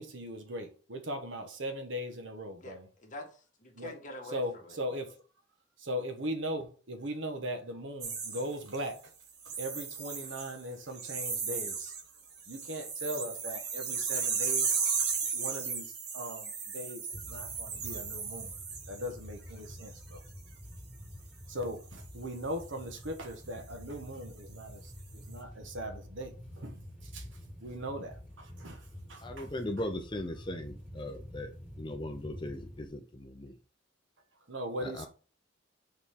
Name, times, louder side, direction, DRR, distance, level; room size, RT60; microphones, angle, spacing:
voice 1, 0.0-2.9 3.8-3.9 4.3-5.2 5.8-9.0 9.4-11.9 12.5-14.8 15.3-18.5 18.9-20.2 21.5-26.9 27.1-27.2 27.6-28.8 29.1-29.5 34.5-35.1, equal, 75° right, 1.3 m, -39 dB
voice 2, 2.6-4.8, left 1 dB, 40° left, 1.7 m, -46 dB
sound 1, 8.0-8.9 9.4-10.6 10.9-12.0 12.3-19.1 19.6-19.9, right 5 dB, 60° right, 1.5 m, -35 dB
sound 2, 17.1-32.9, equal, 10° right, 2.7 m, -48 dB
voice 3, 29.2-31.5 31.8-33.5 34.8-35.1, left 1 dB, 25° left, 0.7 m, -38 dB
6.8 x 4.2 x 3.7 m
head